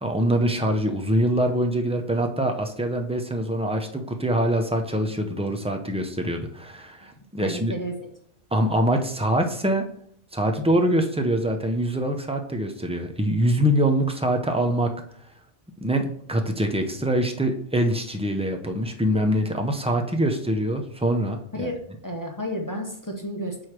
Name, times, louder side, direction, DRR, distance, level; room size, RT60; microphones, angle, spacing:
voice 1, 0.0-7.7 8.5-9.8 10.3-14.9 15.8-21.7, right 1 dB, 10° right, 4 dB, 0.3 m, -24 dB
voice 2, 7.4-8.1 21.5-23.7, equal, 20° left, 1 dB, 0.8 m, -32 dB
4.8 x 4.6 x 5.9 m, 0.63 s
omnidirectional pair, 1.2 m